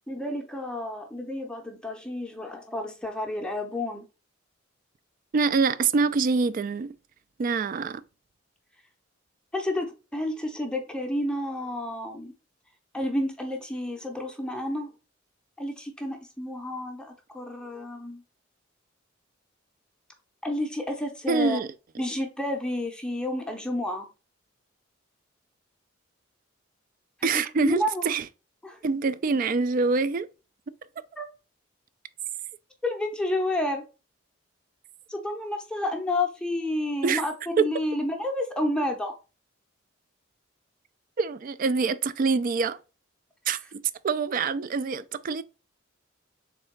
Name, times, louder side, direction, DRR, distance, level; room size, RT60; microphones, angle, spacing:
voice 1, 0.1-4.0 9.5-12.3 12.9-14.9 15.6-18.2 20.4-21.6 22.0-24.1 27.2-28.0 28.6-28.8 31.2-31.3 32.8-33.8 35.1-39.1, left 1 dB, 5° left, 0.6 m, -30 dB
voice 2, 5.3-6.9 7.4-8.0 21.3-21.7 27.2-28.2 28.8-30.3 37.0-37.2 37.6-37.7 41.2-42.8 43.5-45.4, right 4 dB, 45° right, 0.3 m, -25 dB
3.6 x 3.3 x 4.4 m
head